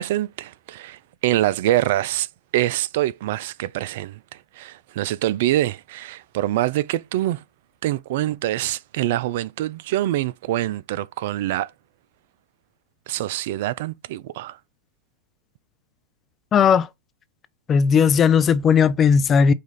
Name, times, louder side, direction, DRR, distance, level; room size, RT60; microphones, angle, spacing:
voice 1, 0.0-2.3 2.5-4.2 4.5-7.4 7.8-11.7 13.1-14.6, right 14 dB, 60° right, 0.3 m, -25 dB
voice 2, 16.5-16.9 17.7-19.5, left 6 dB, 25° left, 0.5 m, -16 dB
5.1 x 2.5 x 3.9 m
hypercardioid pair, 110°, 0 cm